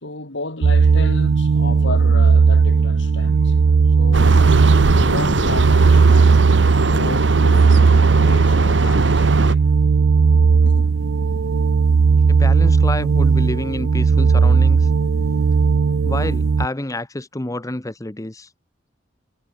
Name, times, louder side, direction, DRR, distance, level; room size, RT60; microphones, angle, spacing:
voice 1, 0.0-3.6 4.0-4.5 5.0-6.3 6.8-9.6 10.6-10.9, left 2 dB, 65° left, 3.1 m, -33 dB
sound 1, 0.6-16.7, right 5 dB, 85° right, 0.5 m, -16 dB
sound 2, 4.1-9.5, right 2 dB, 65° right, 2.9 m, -20 dB
voice 2, 12.3-14.9 16.0-18.5, left 1 dB, 15° left, 1.0 m, -28 dB
head